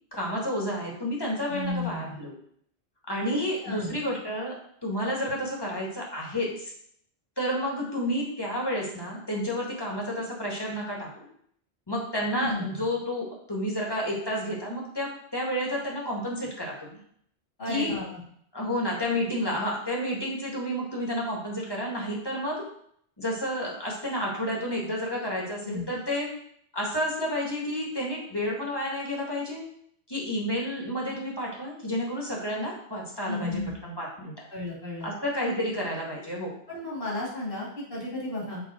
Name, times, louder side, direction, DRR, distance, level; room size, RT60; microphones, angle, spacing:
voice 1, 0.1-2.3 3.1-4.6 4.8-6.7 7.4-11.3 11.9-17.0 17.7-17.9 18.5-22.6 23.2-26.3 26.7-29.6 30.1-34.3 35.0-36.5, equal, 25° left, -3 dB, 1.5 m, -30 dB
voice 2, 1.5-2.1 3.3-3.9 12.4-12.8 17.6-18.2 25.6-25.9 33.3-33.7 34.5-35.1 36.7-38.6, left 2 dB, 65° left, -7 dB, 3.0 m, -33 dB
6.8 x 3.6 x 4.2 m, 0.67 s
omnidirectional pair, 1.0 m